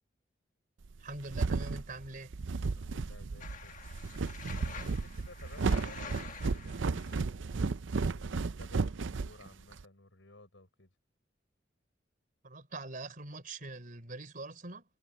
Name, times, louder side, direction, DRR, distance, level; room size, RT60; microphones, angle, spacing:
sound 1, 0.9-9.8, right 4 dB, 90° right, 0.6 m, -34 dB
voice 1, 1.0-2.3 12.4-14.8, right 2 dB, 50° right, 4.0 m, -43 dB
voice 2, 2.8-3.8 4.6-7.5 8.0-10.9, left 2 dB, 90° left, 6.3 m, -56 dB
sound 2, 3.4-7.2, left 6 dB, 45° left, 1.5 m, -48 dB
head